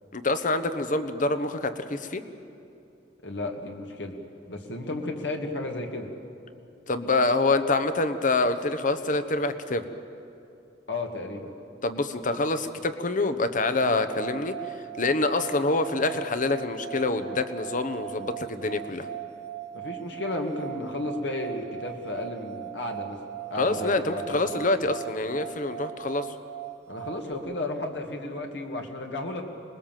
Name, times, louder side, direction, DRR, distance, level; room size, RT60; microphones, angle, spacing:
voice 1, 0.1-2.2 6.9-9.9 11.8-14.5 15.0-19.1 23.6-26.3, left 2 dB, 45° left, 10 dB, 1.1 m, -26 dB
voice 2, 3.2-4.1 4.5-6.1 10.9-11.5 19.7-23.2 23.5-24.6 26.9-29.4, left 2 dB, 70° left, 2 dB, 2.0 m, -33 dB
sound 1, 13.9-27.3, right 13 dB, 65° right, 1.2 m, -39 dB
26.5 x 21.0 x 7.6 m, 2.7 s
head